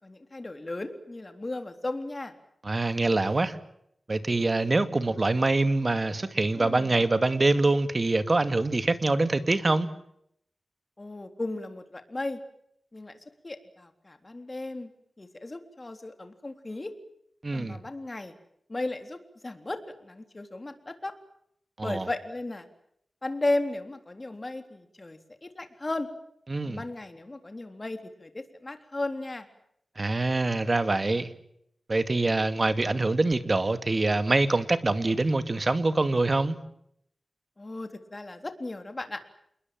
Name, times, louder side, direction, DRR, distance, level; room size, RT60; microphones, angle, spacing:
voice 1, 0.0-2.3 6.6-6.9 11.0-12.4 12.9-13.1 13.4-14.9 15.2-16.9 17.5-18.3 18.7-19.2 19.4-21.1 21.8-22.7 23.2-26.1 26.6-29.5 37.6-39.2, left 2 dB, 30° left, 7 dB, 3.6 m, -35 dB
voice 2, 2.6-3.6 4.1-9.9 17.4-17.8 21.8-22.1 26.5-26.8 30.0-31.3 31.9-36.6, right 2 dB, 35° right, 10 dB, 2.2 m, -25 dB
28.5 x 21.5 x 7.7 m, 0.73 s
wide cardioid pair, 95°, 0 cm